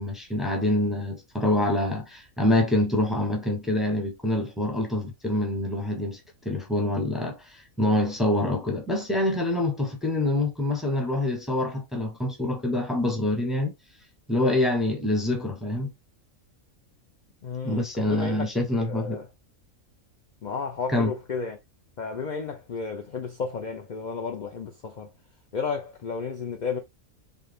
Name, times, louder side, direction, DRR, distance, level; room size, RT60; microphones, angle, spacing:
voice 1, 0.0-13.7 14.3-15.9 17.6-19.2 20.9-21.1, left 1 dB, ahead, 0.7 m, -26 dB
voice 2, 17.4-18.5 18.8-19.3 20.4-21.6 22.0-25.1 25.5-26.8, left 5 dB, 55° left, 0.5 m, -32 dB
3.9 x 2.8 x 3.4 m
omnidirectional pair, 1.4 m